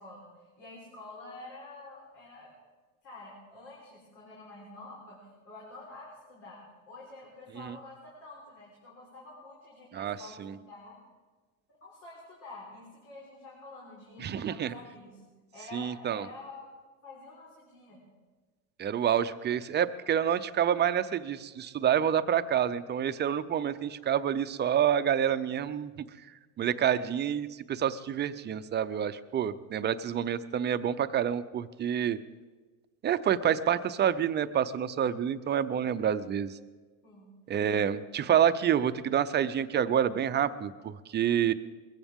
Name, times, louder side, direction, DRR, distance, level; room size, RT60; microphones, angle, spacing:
voice 1, 0.0-2.5 3.0-11.0 11.8-15.2 15.5-16.7 17.0-18.0 26.9-27.0 37.0-37.8, left 2 dB, 85° left, -5 dB, 4.4 m, -48 dB
voice 2, 9.9-10.5 14.2-14.7 15.7-16.3 18.8-25.9 26.6-32.2 33.0-36.5 37.5-41.5, right 9 dB, 25° right, 12 dB, 0.5 m, -28 dB
21.5 x 15.0 x 3.6 m, 1.3 s
supercardioid pair, 125°, 43 cm